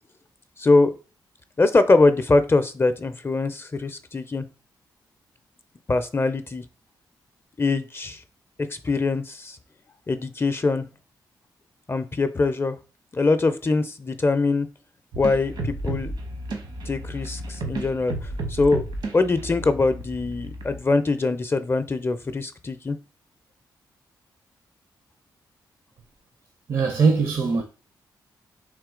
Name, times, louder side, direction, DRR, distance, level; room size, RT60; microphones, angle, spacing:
voice 1, 0.6-0.9 1.6-4.5 5.9-6.6 7.6-8.2 8.7-9.6 10.1-10.9 11.9-12.8 13.1-14.7 15.2-16.1 16.9-23.0, left 3 dB, 30° left, 0.4 m, -23 dB
sound 1, 15.1-20.8, right 2 dB, 75° right, 1.1 m, -33 dB
voice 2, 26.7-27.6, right 4 dB, 55° right, 0.6 m, -21 dB
3.6 x 2.8 x 3.7 m
cardioid pair, 60°, 8 cm